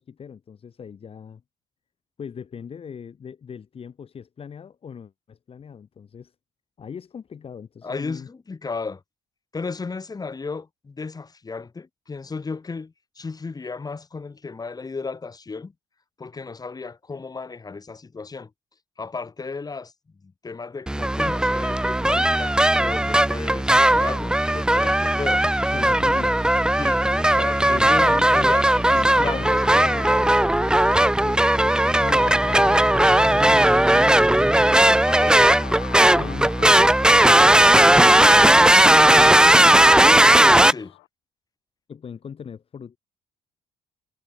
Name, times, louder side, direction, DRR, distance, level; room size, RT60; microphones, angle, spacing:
voice 1, 0.0-1.4 2.2-6.3 6.8-8.3 25.7-26.4 27.6-28.6 28.9-30.1 31.2-35.3 36.0-40.2 40.6-41.0 41.9-43.0, left 7 dB, 45° left, 3.9 m, -39 dB
voice 2, 7.8-9.0 9.5-15.7 16.2-18.5 19.0-19.9 20.2-25.4 26.8-30.3 35.2-35.9 40.6-40.9, left 4 dB, 30° left, 4.9 m, -34 dB
sound 1, 20.9-40.7, right 1 dB, 5° right, 0.9 m, -17 dB
sound 2, 29.1-41.1, left 23 dB, 85° left, 2.3 m, -40 dB
supercardioid pair, 70°, 13 cm